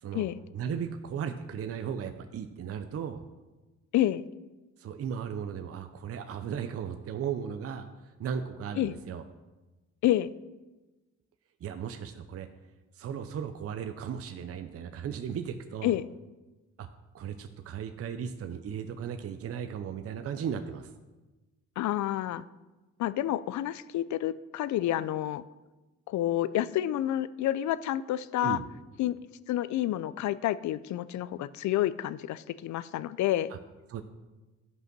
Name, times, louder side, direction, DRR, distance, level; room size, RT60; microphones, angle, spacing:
voice 1, 0.5-3.2 4.8-9.2 11.6-12.5 13.0-15.9 16.8-16.9 17.1-20.9 28.4-28.6 33.5-33.6 33.9-34.0, right 7 dB, 50° right, 8 dB, 0.7 m, -36 dB
voice 2, 3.9-4.2 8.8-8.9 10.0-10.3 15.8-16.1 21.8-22.4 23.0-25.4 26.1-28.6 29.0-29.2 29.5-33.5, left 13 dB, 70° left, 17 dB, 0.5 m, -29 dB
11.5 x 5.5 x 6.0 m, 1.2 s
cardioid pair, 90°, 30 cm